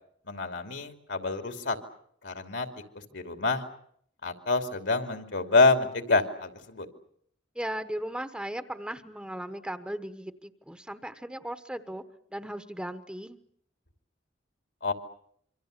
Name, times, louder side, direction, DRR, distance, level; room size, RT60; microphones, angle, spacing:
voice 1, 0.3-1.8 2.2-2.7 3.1-3.6 4.2-6.9 14.8-14.9, left 3 dB, 70° left, 6 dB, 2.9 m, -26 dB
voice 2, 7.5-12.0 12.3-13.4, right 1 dB, 5° right, 9 dB, 1.1 m, -37 dB
27.0 x 24.5 x 6.7 m, 0.66 s
head